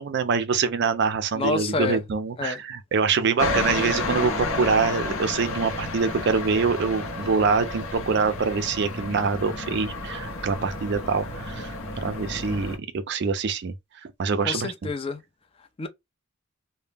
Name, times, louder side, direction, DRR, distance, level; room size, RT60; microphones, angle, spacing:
voice 1, 0.0-13.7 14.2-14.9, right 5 dB, 55° right, 0.4 m, -25 dB
voice 2, 1.3-2.0 2.4-2.6 14.4-15.2 15.8-15.9, left 3 dB, 25° left, 0.3 m, -28 dB
sound 1, 3.4-12.8, left 2 dB, 75° left, 0.7 m, -31 dB
2.1 x 2.0 x 3.3 m
head